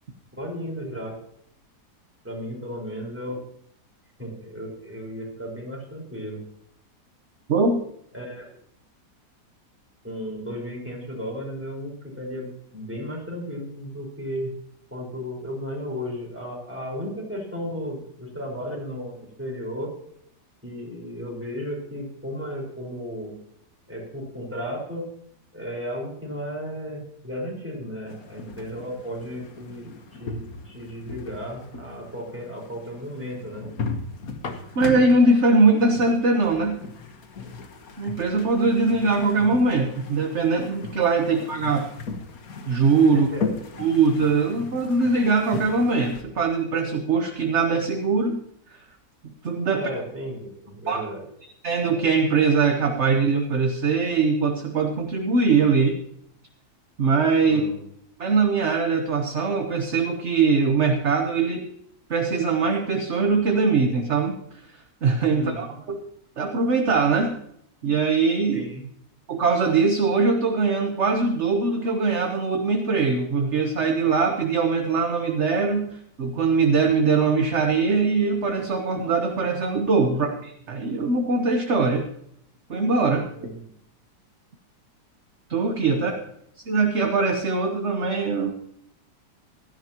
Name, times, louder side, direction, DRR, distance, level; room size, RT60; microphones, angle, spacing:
voice 1, 0.4-1.1 2.2-3.4 4.2-6.4 8.1-8.5 10.0-14.5 14.9-19.9 20.6-23.3 23.9-25.0 25.5-33.7 43.1-43.5 49.7-51.3 57.5-57.8 65.3-65.7 68.5-68.8 80.1-80.3 83.3-83.6 86.0-86.2, equal, 5° right, -2 dB, 4.9 m, -34 dB
voice 2, 7.5-7.8 34.7-36.8 38.0-41.9 42.7-43.3 43.8-48.4 48.7-48.8 49.4-49.8 50.9-51.0 51.6-56.0 57.0-57.6 58.2-61.7 62.1-64.4 65.0-66.0 66.4-67.4 67.8-68.7 69.3-82.1 82.7-83.3 85.5-86.1 86.7-88.5, right 4 dB, 45° right, 3 dB, 1.3 m, -22 dB
sound 1, 28.1-46.2, left 4 dB, 60° left, 1.7 m, -37 dB
16.5 x 13.0 x 3.0 m, 0.71 s
omnidirectional pair, 1.8 m